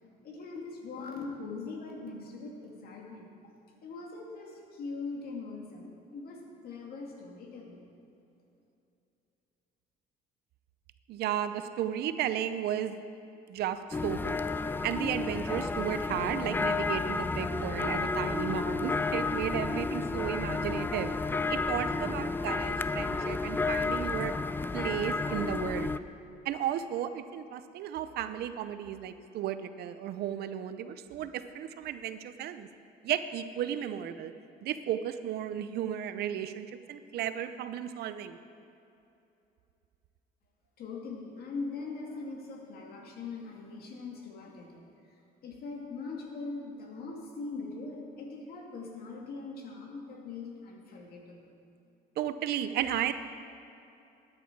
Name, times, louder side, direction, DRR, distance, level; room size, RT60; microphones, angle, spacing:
voice 1, 0.2-3.3 3.8-7.8 40.8-45.2 45.4-51.5, left 3 dB, 65° left, 0 dB, 2.3 m, -41 dB
voice 2, 11.1-13.0 13.5-14.4 14.8-21.1 21.5-24.3 24.7-25.9 26.4-32.7 33.0-34.3 34.6-38.4 52.2-53.1, right 10 dB, 70° right, 11 dB, 0.6 m, -34 dB
sound 1, 13.9-26.0, left 3 dB, 10° left, 0.3 m, -31 dB
13.0 x 9.8 x 4.6 m, 2.8 s
cardioid pair, 110°, 17 cm